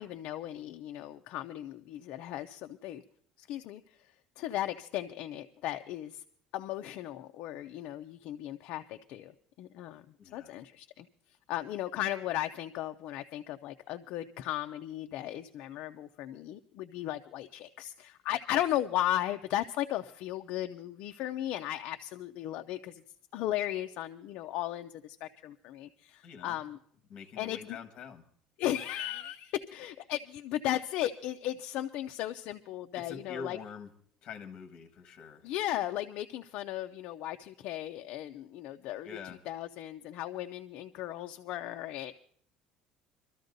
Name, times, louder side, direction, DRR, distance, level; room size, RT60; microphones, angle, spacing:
voice 1, 0.0-3.0 3.4-3.8 4.4-6.2 6.5-9.3 9.6-10.0 10.3-11.1 11.5-23.0 23.3-26.8 27.4-27.6 28.6-33.6 35.4-39.2 39.5-42.1, left 13 dB, 50° left, 7 dB, 0.4 m, -36 dB
voice 2, 10.2-10.5 26.2-26.6 27.1-28.2 32.9-33.9 34.2-35.5 39.0-39.4, left 6 dB, 35° left, 6 dB, 1.4 m, -45 dB
26.0 x 13.0 x 2.6 m, 0.62 s
cardioid pair, 180°, 3 cm